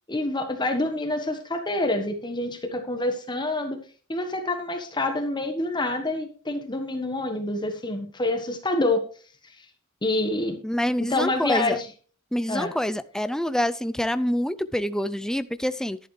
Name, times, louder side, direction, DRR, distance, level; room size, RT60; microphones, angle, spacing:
voice 1, 0.1-3.8 4.1-9.0 9.4-9.6 10.0-10.6 11.0-11.9 12.5-12.7, left 2 dB, 20° left, 6 dB, 1.3 m, -27 dB
voice 2, 10.6-11.8 12.3-16.0, equal, 5° left, 13 dB, 0.4 m, -26 dB
11.5 x 11.0 x 3.2 m, 0.41 s
head